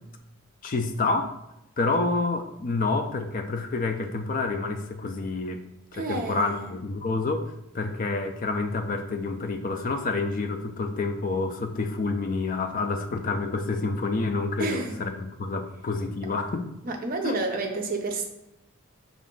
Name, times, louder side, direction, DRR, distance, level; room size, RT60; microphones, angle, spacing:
voice 1, 0.6-1.3 1.8-5.6 5.9-7.5 7.7-16.7 17.2-17.3, left 3 dB, 40° left, 6 dB, 0.4 m, -28 dB
voice 2, 5.9-6.7 14.6-15.0 16.8-18.3, right 3 dB, 40° right, 3 dB, 0.5 m, -30 dB
5.1 x 2.4 x 3.7 m, 0.88 s
head